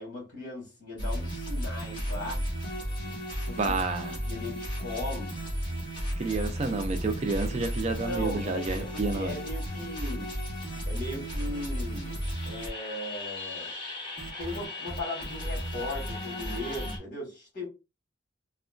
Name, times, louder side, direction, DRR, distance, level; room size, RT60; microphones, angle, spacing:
voice 1, 0.0-2.4 3.0-3.7 4.2-5.3 8.0-12.2 12.4-13.7 14.4-17.7, left 1 dB, 50° left, 1.8 m, -38 dB
sound 1, 1.0-17.0, equal, 25° left, 1.2 m, -34 dB
voice 2, 3.6-4.2 6.2-9.3, right 3 dB, 35° right, 0.4 m, -30 dB
3.6 x 2.1 x 2.4 m
head